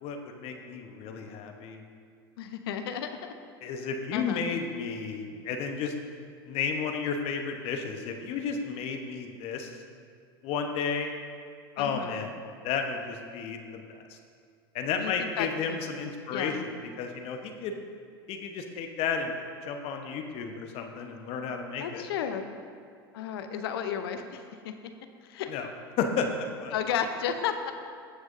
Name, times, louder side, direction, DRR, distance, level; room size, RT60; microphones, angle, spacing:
voice 1, 0.0-1.8 3.6-5.9 6.5-9.8 10.4-11.1 11.8-12.3 12.6-14.2 14.7-17.8 18.3-19.4 19.6-22.0 25.5-25.7 26.0-26.7, left 5 dB, 50° left, 4 dB, 1.0 m, -32 dB
voice 2, 2.4-3.3 4.1-4.4 11.8-12.3 15.0-15.9 16.3-16.6 21.8-22.4 23.1-24.9 25.2-25.5 26.7-27.7, left 8 dB, 70° left, 8 dB, 0.7 m, -33 dB
15.5 x 6.2 x 2.7 m, 2.2 s
hypercardioid pair, 85°, 13 cm